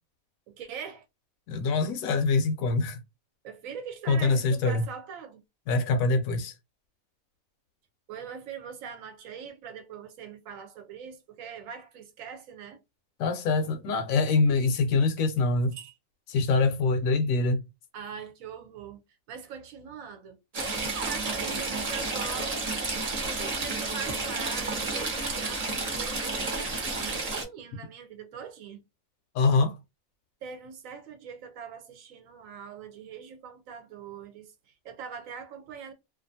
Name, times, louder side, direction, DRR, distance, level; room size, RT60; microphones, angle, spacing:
voice 1, 0.5-1.0 3.4-5.4 8.1-12.8 15.7-16.0 16.6-16.7 17.9-19.0 19.3-20.4 20.7-22.6 23.4-28.8 30.4-35.9, right 7 dB, 70° right, 0.9 m, -42 dB
voice 2, 1.5-3.0 4.1-4.8 5.7-6.5 13.2-15.7 16.3-17.6 29.3-29.7, left 3 dB, 75° left, 0.9 m, -24 dB
Stream / Trickle dribble, 20.5-27.4, right 3 dB, 40° right, 0.5 m, -31 dB
2.4 x 2.4 x 2.6 m
omnidirectional pair, 1.5 m